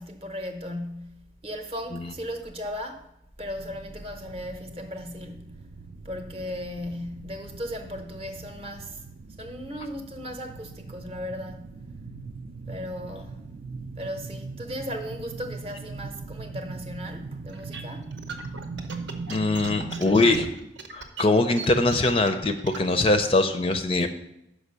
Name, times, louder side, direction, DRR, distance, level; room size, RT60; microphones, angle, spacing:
voice 1, 0.0-3.1 3.4-5.6 6.0-9.1 9.4-11.7 12.7-13.4 14.0-18.1, equal, 30° right, 0.7 m, -36 dB
sound 1, 3.5-20.4, right 4 dB, 60° right, 0.4 m, -40 dB
sound 2, 17.5-22.9, right 4 dB, 80° right, 0.9 m, -39 dB
voice 2, 19.3-20.5 20.9-24.1, left 2 dB, 30° left, 0.4 m, -22 dB
6.1 x 5.0 x 6.6 m
head